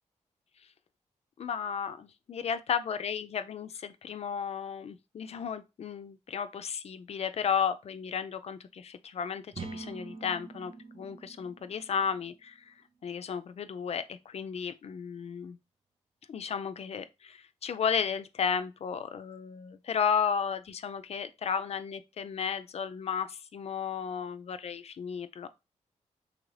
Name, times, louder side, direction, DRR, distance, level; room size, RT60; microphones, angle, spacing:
voice 1, 1.4-12.7 13.0-15.6 16.3-25.5, left 7 dB, 55° left, 0.4 m, -34 dB
sound 1, 9.5-13.3, right 3 dB, 45° right, 0.6 m, -45 dB
3.0 x 2.5 x 3.2 m
cardioid pair, 60°, 13 cm